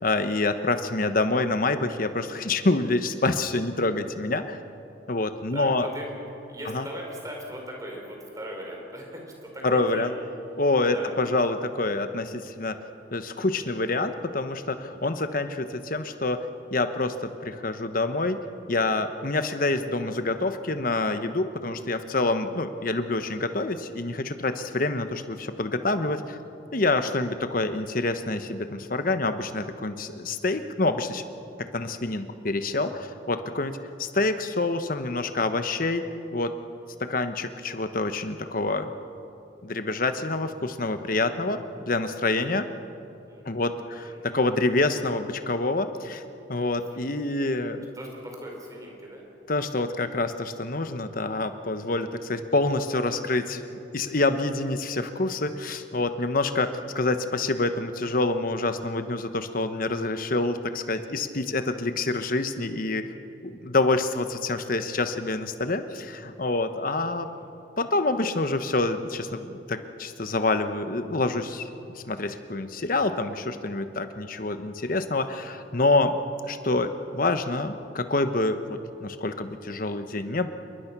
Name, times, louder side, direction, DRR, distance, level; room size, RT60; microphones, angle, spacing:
voice 1, 0.0-4.6 5.1-5.9 6.7-6.9 9.6-10.1 10.6-12.8 13.1-16.5 16.7-18.4 18.7-26.4 26.7-31.2 31.6-36.0 36.3-36.5 37.0-38.9 39.6-41.6 41.9-42.7 43.4-46.2 46.5-47.8 49.5-63.1 63.4-67.3 67.8-71.7 71.9-76.2 76.5-80.5, left 2 dB, 50° left, 9 dB, 1.2 m, -27 dB
voice 2, 5.5-6.1 6.5-10.1 10.9-11.1 24.5-24.6 43.3-44.2 46.9-47.0 47.4-47.5 47.9-49.2 66.6-67.4, equal, 20° right, 0 dB, 4.9 m, -40 dB
27.5 x 22.0 x 6.1 m, 2.8 s
head